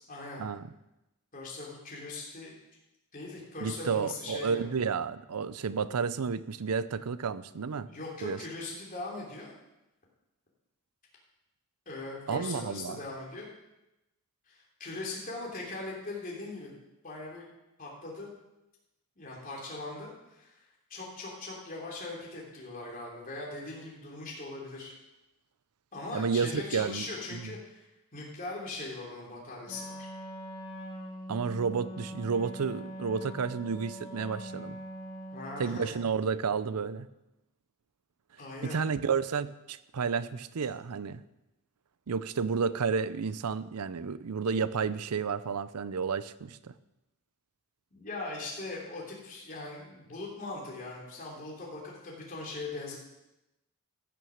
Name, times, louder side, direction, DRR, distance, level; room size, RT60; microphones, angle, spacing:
voice 1, 0.1-0.5 1.3-2.5 3.1-4.8 7.9-9.5 11.8-13.5 14.5-16.7 17.0-17.5 17.8-18.3 19.2-20.5 20.9-25.0 25.9-27.9 28.1-30.1 35.3-36.0 38.4-38.8 47.9-53.0, left 2 dB, 40° left, -3 dB, 3.2 m, -40 dB
voice 2, 3.6-7.9 8.2-8.4 12.3-13.0 26.1-27.1 27.3-27.5 31.3-34.8 35.6-37.1 38.6-41.2 42.1-46.7, right 5 dB, 80° right, 15 dB, 0.6 m, -31 dB
Wind instrument woodwind instrument, 29.6-35.8, equal, 25° left, 2.2 m, -43 dB
14.5 x 6.3 x 6.5 m, 0.94 s
head